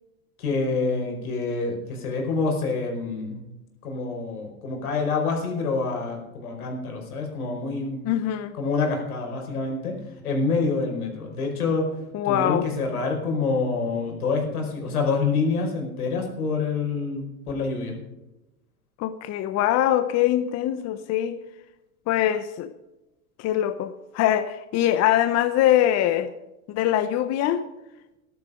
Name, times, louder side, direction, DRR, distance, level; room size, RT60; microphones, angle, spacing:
voice 1, 0.4-3.4 3.8-8.1 8.6-9.9 10.2-11.9 12.2-18.0, left 4 dB, 85° left, 5.0 m, -27 dB
voice 2, 8.0-8.6 12.1-12.7 19.0-21.4 22.1-22.7 23.4-26.3 26.7-27.6, left 12 dB, 35° left, 0.9 m, -23 dB
13.5 x 12.0 x 5.0 m
hypercardioid pair, 110°, 43 cm